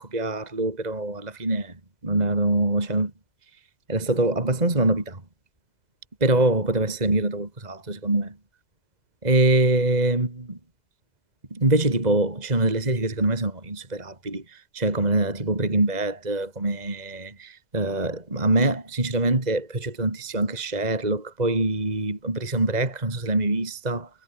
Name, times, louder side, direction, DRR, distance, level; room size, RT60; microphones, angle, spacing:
voice 1, 0.0-1.7 2.0-3.1 3.9-5.2 6.2-8.4 9.2-10.6 11.5-24.1, right 2 dB, 15° right, 1.6 m, -24 dB
omnidirectional pair, 5.7 m